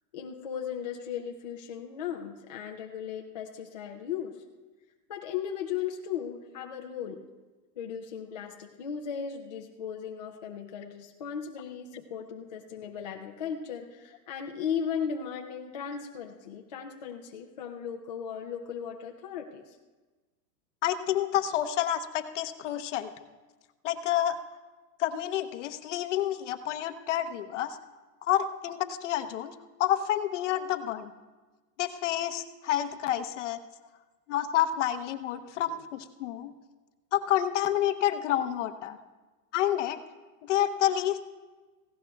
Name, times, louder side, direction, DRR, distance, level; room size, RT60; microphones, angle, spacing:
voice 1, 0.1-4.4 5.1-7.2 7.8-19.8, left 8 dB, 30° left, 1 dB, 0.4 m, -36 dB
voice 2, 20.8-23.1 23.8-24.4 25.0-27.8 28.2-29.5 29.8-31.1 31.8-33.6 34.3-36.5 37.1-39.0 39.5-40.0 40.4-41.2, left 11 dB, 50° left, 9 dB, 0.8 m, -29 dB
18.0 x 16.0 x 2.3 m, 1.3 s
supercardioid pair, 160°, 48 cm